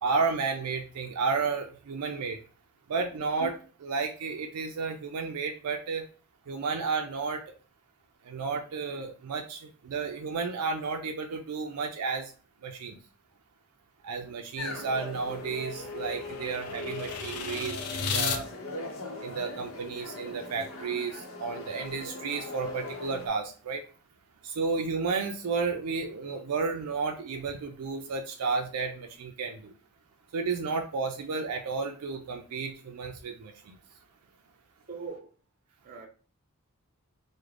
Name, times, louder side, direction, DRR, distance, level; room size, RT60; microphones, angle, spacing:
voice 1, 0.0-2.4 2.9-6.0 6.5-7.4 8.2-12.3 12.6-13.0 14.0-18.5 19.2-23.8 24.4-29.7 30.3-33.8, right 4 dB, 80° right, 0.4 m, -32 dB
sound 1, 14.6-23.3, left 2 dB, 65° left, 0.8 m, -40 dB
sound 2, 14.8-18.4, left 6 dB, 90° left, 0.5 m, -35 dB
voice 2, 34.9-35.3 35.8-36.1, right 5 dB, 40° right, 0.8 m, -40 dB
3.6 x 2.1 x 3.2 m
head